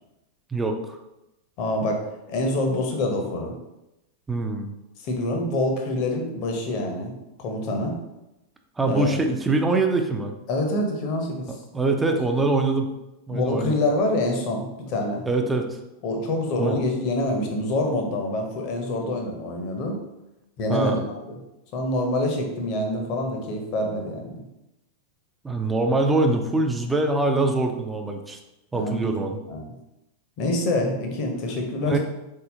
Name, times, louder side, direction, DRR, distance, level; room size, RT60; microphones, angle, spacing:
voice 1, 0.5-1.0 4.3-4.7 8.8-10.3 11.5-12.9 13.3-13.7 15.3-15.7 16.6-16.8 20.7-21.0 25.4-28.4 28.7-29.4 31.8-32.0, right 2 dB, 10° right, 4 dB, 0.5 m, -23 dB
voice 2, 1.6-2.0 2.3-3.6 5.0-7.1 7.4-7.9 8.8-9.2 10.5-11.6 13.3-15.3 16.0-20.0 20.6-21.4 21.7-24.4 28.7-29.0 29.5-29.6 30.4-32.0, left 1 dB, 45° left, 2 dB, 0.8 m, -26 dB
4.0 x 3.7 x 2.7 m, 0.92 s
figure-of-eight pair, 90°, 0 cm